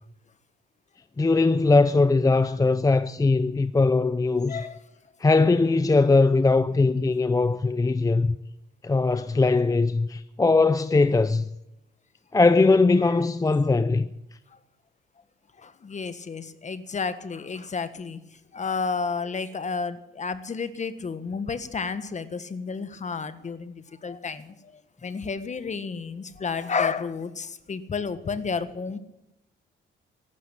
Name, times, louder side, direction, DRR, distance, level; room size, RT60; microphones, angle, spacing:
voice 1, 1.2-4.7 5.2-8.4 8.8-11.5 12.3-14.1, left 3 dB, 15° left, 0.6 m, -20 dB
voice 2, 15.6-18.2 18.5-29.0, left 5 dB, 35° left, 1.6 m, -31 dB
15.0 x 12.0 x 7.7 m
cardioid pair, 90°, 20 cm